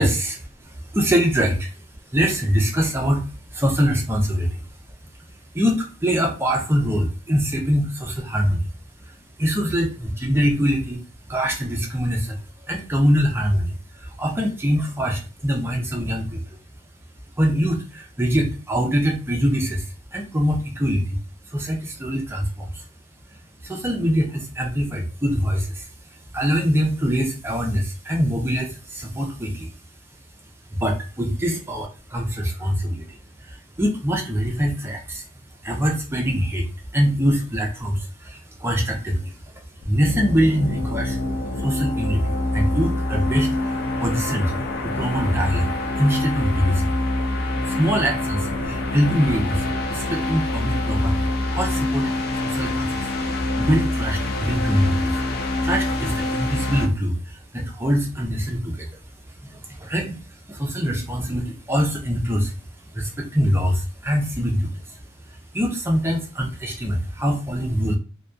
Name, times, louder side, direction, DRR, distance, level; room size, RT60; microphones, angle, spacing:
voice 1, 0.0-1.8 2.1-4.6 5.5-8.7 9.1-11.0 11.3-16.6 17.4-21.2 21.4-22.8 23.6-25.9 26.3-29.7 30.7-35.3 35.6-39.5 39.8-41.2 41.6-44.6 44.8-47.0 47.6-55.3 55.6-59.0 59.4-60.2 60.5-62.5 62.9-68.0, equal, 10° right, 0 dB, 0.4 m, -24 dB
sound 1, 39.8-56.9, left 2 dB, 50° left, 0.4 m, -25 dB
2.7 x 2.2 x 2.3 m, 0.33 s
head